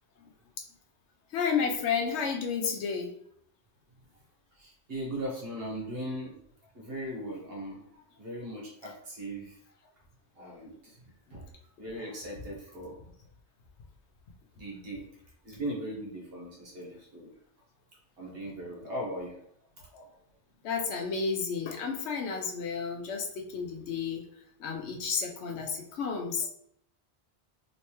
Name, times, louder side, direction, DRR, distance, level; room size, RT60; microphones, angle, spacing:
voice 1, 1.3-3.1 19.9-20.1 20.6-24.2 24.6-26.5, left 6 dB, 85° left, 2 dB, 0.9 m, -31 dB
voice 2, 4.5-6.4 6.7-9.6 10.3-11.5 11.8-13.0 14.5-15.1 15.4-17.3 18.2-19.3 19.8-19.9 24.8-25.0, right 1 dB, 60° right, -3 dB, 1.4 m, -39 dB
3.2 x 3.1 x 3.0 m, 0.70 s
omnidirectional pair, 1.1 m